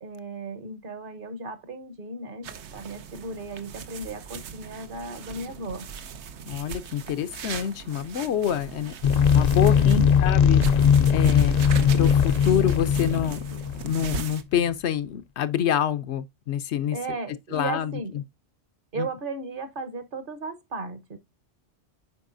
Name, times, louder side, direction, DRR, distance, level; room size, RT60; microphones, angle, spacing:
voice 1, 0.0-5.9 9.8-10.2 16.9-18.2 18.9-21.2, right 3 dB, 55° right, 1.2 m, -35 dB
sound 1, 2.4-14.4, right 6 dB, 90° right, 1.1 m, -38 dB
voice 2, 6.5-8.9 9.3-11.6 11.9-13.4 13.8-17.0 17.5-17.9 19.0-19.1, left 9 dB, 80° left, 1.0 m, -27 dB
sound 2, 9.0-14.2, left 7 dB, 55° left, 0.5 m, -20 dB
8.2 x 5.3 x 2.6 m
omnidirectional pair, 1.1 m